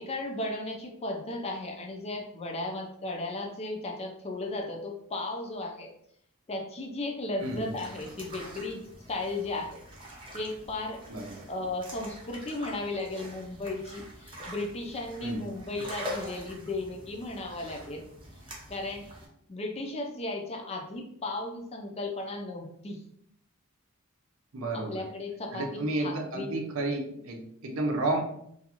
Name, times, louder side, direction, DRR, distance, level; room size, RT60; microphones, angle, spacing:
voice 1, 0.0-5.9 6.5-9.8 10.3-11.0 11.5-18.0 18.7-19.0 19.5-23.0 24.7-26.6, left 2 dB, 30° left, 2 dB, 0.4 m, -35 dB
sound 1, 7.4-19.3, equal, 25° right, 0.7 m, -45 dB
voice 2, 11.1-11.4 15.2-15.5 24.5-25.1 25.5-28.2, right 2 dB, 70° right, 2 dB, 0.6 m, -31 dB
2.5 x 2.3 x 2.8 m, 0.70 s
head